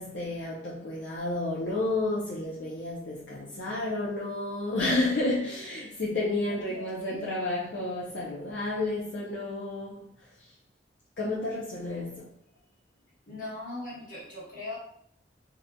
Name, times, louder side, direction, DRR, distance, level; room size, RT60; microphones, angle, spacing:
voice 1, 0.0-10.1 11.2-12.3, left 2 dB, 65° left, 0.6 m, -31 dB
voice 2, 6.5-7.2 13.3-14.8, left 2 dB, 45° left, 1.4 m, -40 dB
3.8 x 2.9 x 2.2 m
head